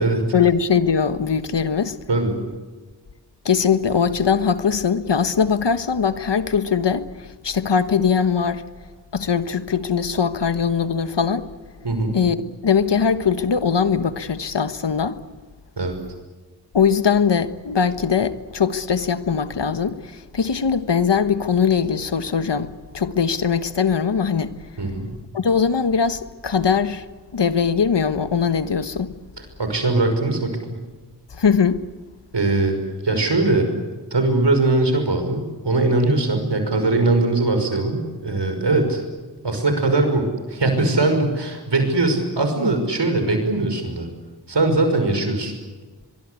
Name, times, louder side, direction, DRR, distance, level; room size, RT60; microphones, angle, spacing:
voice 1, 0.3-2.0 3.4-8.6 9.1-11.5 12.1-12.4 12.6-15.2 16.7-24.6 25.3-27.0 27.3-29.1 31.3-31.8, left 6 dB, 85° left, 1.3 m, -21 dB
voice 2, 11.8-12.2 15.8-16.0 24.8-25.1 29.4-30.6 32.3-32.8 33.0-33.7 34.1-39.0 39.4-44.1 44.5-45.5, right 2 dB, 80° right, 5.8 m, -21 dB
23.5 x 23.0 x 8.3 m
cardioid pair, 40°, 41 cm